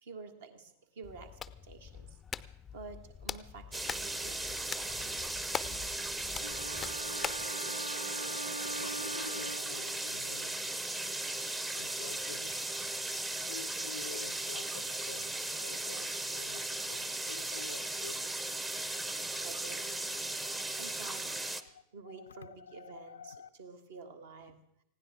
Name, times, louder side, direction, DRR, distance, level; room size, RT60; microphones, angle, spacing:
voice 1, 0.0-2.2 2.7-5.3 7.2-7.3 12.9-13.2 18.9-19.0 19.4-21.7 21.9-24.8, right 4 dB, 60° right, 1.7 m, -50 dB
Hands, 1.0-7.5, left 7 dB, 20° left, 0.5 m, -43 dB
sound 1, 3.7-21.6, right 2 dB, 10° right, 0.8 m, -37 dB
sound 2, 6.4-10.3, right 2 dB, 80° right, 0.5 m, -42 dB
voice 2, 6.8-10.9 11.7-13.0 13.4-19.1 21.6-23.5, left 7 dB, 70° left, 0.4 m, -50 dB
20.0 x 16.0 x 3.6 m
figure-of-eight pair, 90°, 0 cm